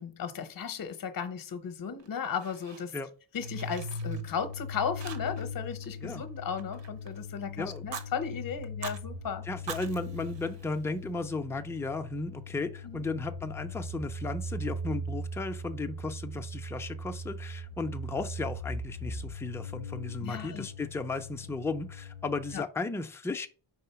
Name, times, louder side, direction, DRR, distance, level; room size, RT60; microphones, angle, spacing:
voice 1, 0.0-2.9 3.3-9.5 12.8-13.0 20.2-20.7 22.5-22.6, left 7 dB, 45° left, 0.7 m, -35 dB
Fire, 2.0-3.1 3.4-4.6 5.0-5.6 5.8-7.2 7.7-8.1 8.6-9.0 9.5-11.1, right 6 dB, 60° right, 0.8 m, -44 dB
sound 1, 3.4-22.5, left 1 dB, 85° right, 3.0 m, -40 dB
voice 2, 7.6-7.9 9.4-23.5, left 3 dB, 5° left, 0.3 m, -35 dB
4.8 x 3.6 x 5.6 m
wide cardioid pair, 165°, 47 cm